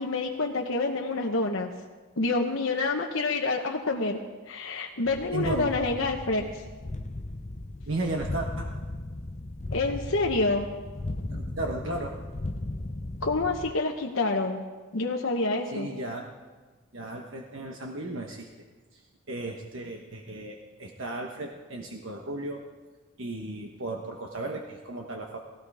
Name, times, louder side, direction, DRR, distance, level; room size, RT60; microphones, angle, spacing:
voice 1, 0.0-1.7 2.2-4.2 4.5-6.4 9.7-10.7 13.2-14.6 14.9-15.9, left 3 dB, 75° left, 1 dB, 1.1 m, -27 dB
sound 1, 5.1-13.7, left 2 dB, 35° left, 0.6 m, -36 dB
voice 2, 5.3-5.7 7.9-8.7 11.3-12.2 15.7-16.2 16.9-18.5 18.9-22.6 23.2-25.4, right 2 dB, 70° right, 1 dB, 1.2 m, -35 dB
17.5 x 15.5 x 4.9 m, 1.3 s
head